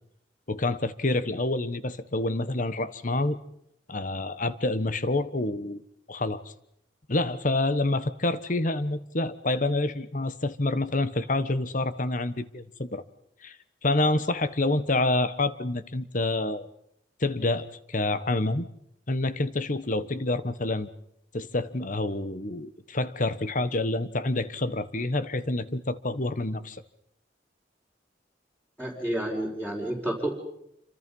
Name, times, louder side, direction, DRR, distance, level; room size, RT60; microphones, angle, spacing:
voice 1, 0.5-3.4 3.9-5.8 6.1-6.5 7.1-13.0 13.4-13.6 13.8-16.7 17.2-18.7 19.1-20.9 21.3-26.8, left 2 dB, 45° left, 13 dB, 1.2 m, -27 dB
voice 2, 28.8-30.3, right 1 dB, 10° left, -4 dB, 4.6 m, -30 dB
28.0 x 25.5 x 5.5 m, 0.76 s
head